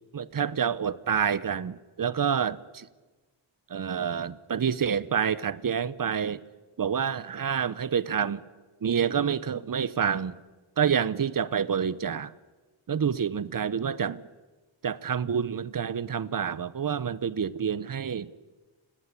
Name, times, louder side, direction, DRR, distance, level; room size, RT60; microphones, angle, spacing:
voice 1, 0.1-2.9 3.7-6.4 6.8-8.4 8.8-10.3 10.8-12.3 12.9-14.2 14.8-18.3, right 7 dB, 45° right, 19 dB, 0.8 m, -28 dB
29.5 x 17.5 x 8.4 m, 1.3 s
wide cardioid pair, 115°, 48 cm